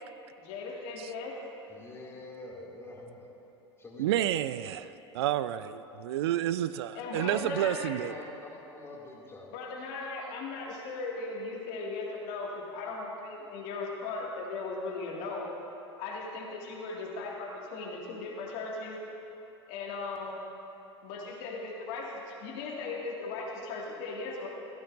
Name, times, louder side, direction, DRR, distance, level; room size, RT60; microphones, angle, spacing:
voice 1, 0.4-1.3 6.9-7.9 9.5-15.5 16.0-19.0 19.7-20.4 21.0-24.5, left 3 dB, 55° left, -2 dB, 2.2 m, -37 dB
voice 2, 1.7-3.3 3.8-4.4 7.2-9.5, left 2 dB, 20° left, -3 dB, 2.6 m, -46 dB
voice 3, 4.0-4.8 5.1-8.1, right 12 dB, 65° right, 14 dB, 0.4 m, -30 dB
17.0 x 14.5 x 2.7 m, 3.0 s
figure-of-eight pair, 80°, 14 cm